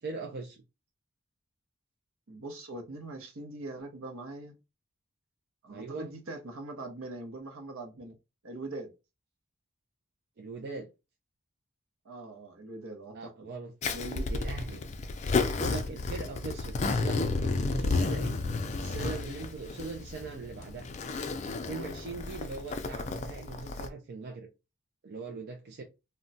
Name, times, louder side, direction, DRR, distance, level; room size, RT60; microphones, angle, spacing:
voice 1, 0.0-0.6 5.7-6.1 10.4-10.9 13.1-13.7 14.3-14.8 15.6-18.4 18.7-20.9 21.7-24.5 25.0-25.8, right 4 dB, 50° right, 0.4 m, -40 dB
voice 2, 2.3-4.5 5.6-8.2 8.4-8.9 12.0-13.5 13.9-14.3, right 2 dB, 70° right, 0.8 m, -42 dB
Zipper (clothing), 13.8-23.9, left 3 dB, 35° left, 0.3 m, -32 dB
2.2 x 2.1 x 3.8 m
head